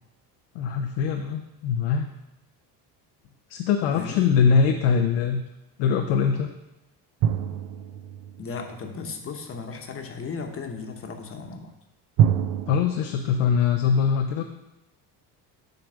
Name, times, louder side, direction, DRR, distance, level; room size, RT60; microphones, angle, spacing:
voice 1, 0.5-2.1 3.5-5.4 5.8-6.5 12.7-14.4, left 6 dB, 75° left, 4 dB, 0.7 m, -22 dB
voice 2, 3.9-4.3 8.4-11.7, left 4 dB, 30° left, 4 dB, 1.1 m, -35 dB
sound 1, 7.2-8.9 12.2-12.8, right 9 dB, 55° right, 0.6 m, -25 dB
7.8 x 3.3 x 6.2 m, 0.93 s
supercardioid pair, 100°, 43 cm